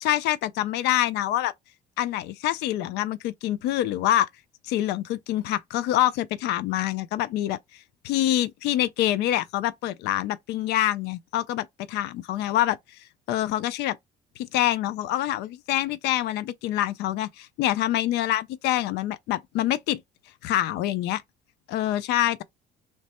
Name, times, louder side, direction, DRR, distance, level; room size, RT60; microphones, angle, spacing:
voice 1, 0.0-1.5 2.0-4.3 4.6-7.6 8.0-11.6 11.9-12.8 13.3-14.0 14.4-20.0 20.4-21.2 21.7-22.4, left 13 dB, 80° left, 0.4 m, -26 dB
3.2 x 2.1 x 4.1 m
cardioid pair, 110°, 17 cm